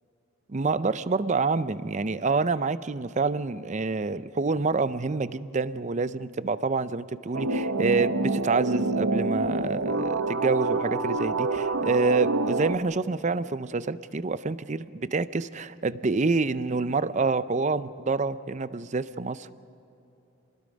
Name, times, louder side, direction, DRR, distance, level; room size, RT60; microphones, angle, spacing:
voice 1, 0.5-19.6, right 3 dB, 35° right, 15 dB, 0.5 m, -27 dB
sound 1, 7.3-12.8, right 3 dB, 70° right, 0.9 m, -27 dB
28.0 x 21.0 x 5.2 m, 3.0 s
head